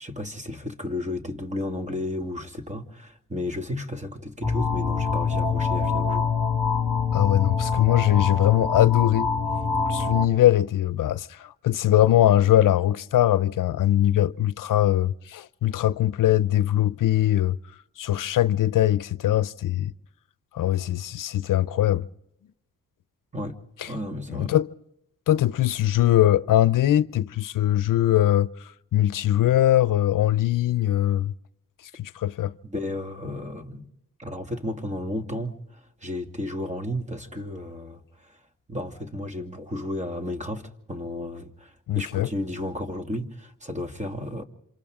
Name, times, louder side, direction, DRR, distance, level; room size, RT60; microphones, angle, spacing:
voice 1, 0.0-6.3 23.3-24.5 32.6-33.9 34.2-38.4 38.7-44.4, left 1 dB, 20° right, 2.4 m, -33 dB
sound 1, 4.4-10.3, left 5 dB, 5° right, 5.8 m, -25 dB
voice 2, 7.1-9.3 9.9-17.6 18.0-19.9 20.5-22.1 23.8-23.9 24.3-24.7 25.3-31.3 31.9-32.5 41.9-42.3, left 13 dB, 75° left, 0.7 m, -21 dB
27.5 x 26.5 x 3.7 m
cardioid pair, 60°, 33 cm